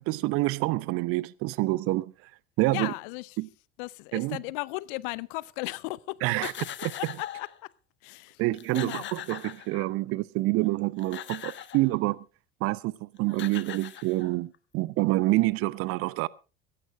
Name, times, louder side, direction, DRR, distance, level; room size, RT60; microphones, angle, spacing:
voice 1, 0.0-2.3 2.6-2.9 3.4-3.5 4.1-4.4 6.2-6.5 8.4-12.2 12.6-16.3, right 20 dB, 45° right, 0.8 m, -27 dB
voice 2, 2.7-3.4 3.8-6.7 7.0-7.7 8.0-8.4 8.7-9.1, left 23 dB, 55° left, 0.8 m, -36 dB
sound 1, 6.3-7.6 8.2-8.3 8.5-10.1 10.8-11.9 13.0-13.1 13.3-14.6, left 11 dB, 35° left, 1.2 m, -41 dB
17.5 x 15.5 x 3.2 m
figure-of-eight pair, 65°, 31 cm